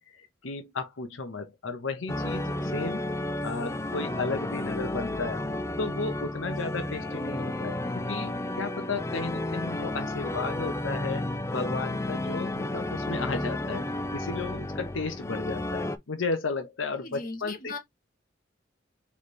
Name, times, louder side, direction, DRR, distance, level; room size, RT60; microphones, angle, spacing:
voice 1, 0.0-3.1 3.4-5.5 5.8-13.9 14.1-17.7, left 4 dB, 85° left, 0.9 m, -34 dB
sound 1, 2.1-16.0, left 1 dB, 15° left, 0.4 m, -32 dB
voice 2, 17.0-17.8, left 3 dB, 45° left, 1.3 m, -38 dB
4.3 x 3.5 x 3.1 m
head